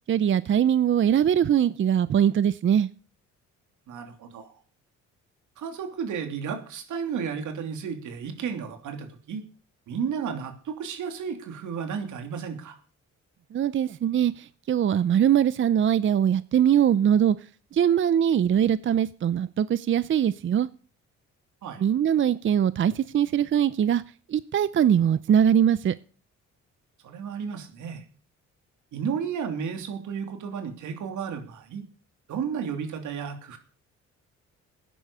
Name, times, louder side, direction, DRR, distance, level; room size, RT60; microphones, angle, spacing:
voice 1, 0.1-2.9 13.5-17.4 17.7-20.7 21.8-24.0 24.3-25.9, right 9 dB, 40° right, 17 dB, 0.5 m, -22 dB
voice 2, 3.9-4.5 5.6-9.4 9.9-12.8 21.6-21.8 27.0-28.0 28.9-31.8 32.3-33.6, right 6 dB, 80° right, 6 dB, 2.9 m, -33 dB
13.5 x 10.0 x 6.8 m, 0.41 s
cardioid pair, 90°, 30 cm